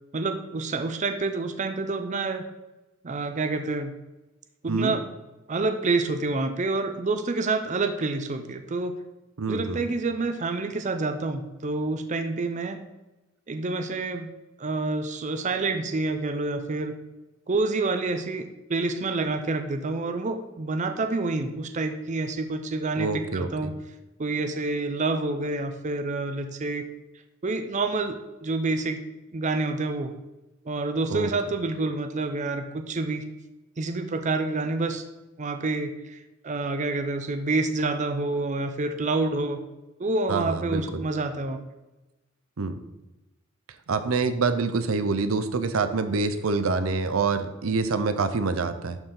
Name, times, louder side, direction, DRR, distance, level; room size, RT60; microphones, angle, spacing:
voice 1, 0.1-2.4 3.0-4.0 4.6-5.0 5.5-9.0 9.5-12.8 13.5-14.3 14.6-17.0 17.5-23.7 24.2-26.9 27.4-29.0 29.3-30.1 30.7-33.2 33.8-35.0 35.4-36.2 36.4-39.6 40.0-41.6, right 3 dB, 35° right, 8 dB, 0.5 m, -28 dB
voice 2, 9.4-9.9 23.0-23.7 31.1-31.3 40.3-41.0 42.6-42.8 43.9-49.0, right 4 dB, 90° right, 10 dB, 0.6 m, -26 dB
11.5 x 4.5 x 3.8 m, 1.0 s
head